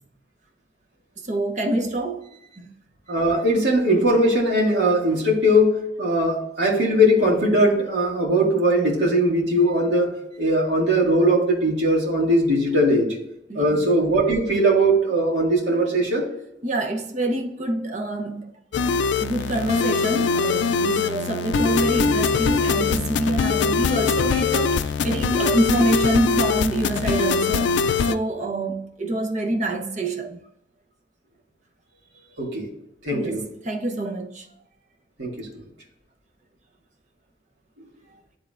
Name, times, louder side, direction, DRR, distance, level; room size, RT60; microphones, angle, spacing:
voice 1, 1.2-2.7 13.5-13.9 16.6-18.5 19.2-30.4 33.1-34.5, right 1 dB, 40° right, 0.8 m, -26 dB
voice 2, 3.1-13.2 13.5-16.2 32.4-32.7 33.0-33.4 35.2-35.5, equal, 80° right, 1.9 m, -20 dB
sound 1, 18.7-28.1, left 5 dB, 75° left, 0.3 m, -22 dB
10.5 x 3.7 x 2.5 m
head